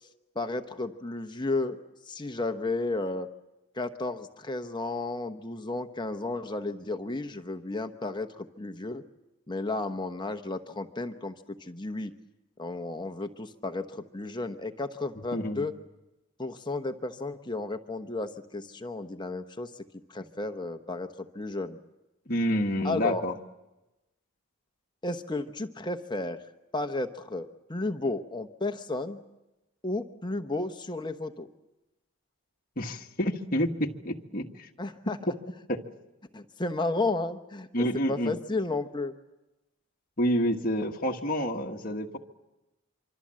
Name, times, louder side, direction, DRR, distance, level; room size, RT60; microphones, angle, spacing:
voice 1, 0.3-1.8 2.1-3.3 3.7-9.0 9.5-11.3 11.6-12.1 12.6-15.7 16.4-19.7 20.1-21.1 21.3-21.8 22.8-23.2 25.0-26.4 26.7-29.2 29.8-31.5 34.8-35.2 36.3-37.7 38.1-39.1, left 2 dB, 20° left, 7 dB, 1.0 m, -33 dB
voice 2, 15.3-15.7 22.3-23.3 32.8-34.7 35.3-35.4 35.7-35.8 37.7-38.4 40.2-42.2, equal, 40° left, 1 dB, 1.5 m, -28 dB
25.5 x 25.0 x 7.6 m, 1.0 s
head